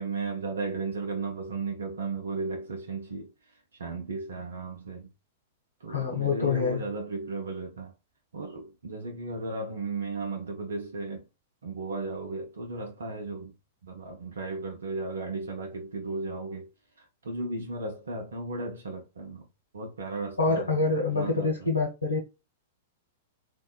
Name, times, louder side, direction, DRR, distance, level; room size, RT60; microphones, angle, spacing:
voice 1, 0.0-5.1 5.8-7.9 8.3-11.3 11.6-13.5 13.8-16.7 17.0-19.5 19.7-20.8 21.1-21.7, right 3 dB, 70° right, 0.6 m, -35 dB
voice 2, 5.9-6.8 20.4-22.2, left 4 dB, 85° left, 1.3 m, -26 dB
2.6 x 2.1 x 2.2 m
figure-of-eight pair, 100°, 0 cm